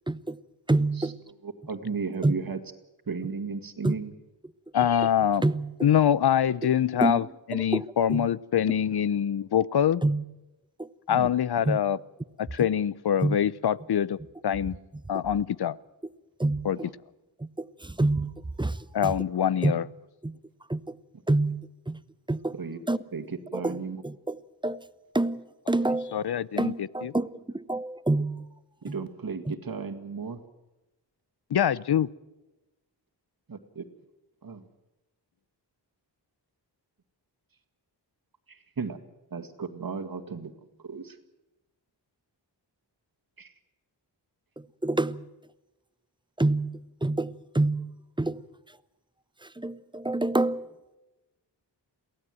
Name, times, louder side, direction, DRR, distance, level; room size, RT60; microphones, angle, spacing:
voice 1, 0.1-0.4 0.7-1.2 2.2-2.3 3.8-4.0 5.4-5.7 6.6-6.7 7.0-8.3 10.0-10.2 10.8-10.9 11.7-11.8 12.6-12.7 13.2-13.4 16.4-16.7 17.4-18.3 18.6-19.1 19.6-19.7 20.2-20.4 20.7-21.0 21.3-22.0 22.3-22.6 22.9-23.0 23.5-24.9 25.1-26.2 26.6-28.5 28.9-29.0 29.5-29.6 44.6-45.3 46.4-48.4 49.4-50.8, right 2 dB, 10° right, 0.7 m, -28 dB
voice 2, 1.4-2.6 3.1-4.1 11.1-11.3 16.8-16.9 22.5-22.8 23.1-24.0 28.8-30.4 33.5-33.8 34.4-34.6 38.5-39.0 39.3-40.5 40.8-41.2 43.4-43.5, right 5 dB, 50° right, 1.9 m, -35 dB
voice 3, 4.7-5.4 5.8-7.2 7.5-10.0 11.1-12.0 12.4-14.2 14.4-14.8 15.1-15.8 16.6-16.8 18.9-19.8 26.1-27.1 31.5-32.1, left 9 dB, 65° left, 0.7 m, -24 dB
23.0 x 16.5 x 7.7 m
wide cardioid pair, 75°, 43 cm